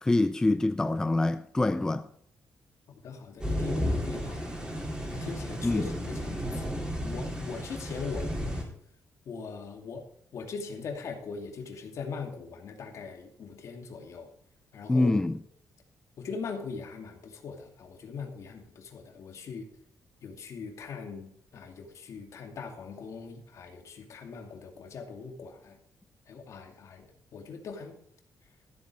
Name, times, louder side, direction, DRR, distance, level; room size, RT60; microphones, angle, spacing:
voice 1, 0.0-2.1 5.6-5.9 14.9-15.4, left 2 dB, 10° left, 0.5 m, -25 dB
voice 2, 3.0-4.7 5.1-8.7 9.3-10.0 10.3-14.3 14.7-15.1 16.2-19.7 20.2-25.8 26.3-27.1 27.3-28.0, left 5 dB, 60° left, 2.5 m, -41 dB
sound 1, 3.4-8.6, equal, 15° right, 4.0 m, -33 dB
14.0 x 8.2 x 5.3 m
cardioid pair, 125°, 6 cm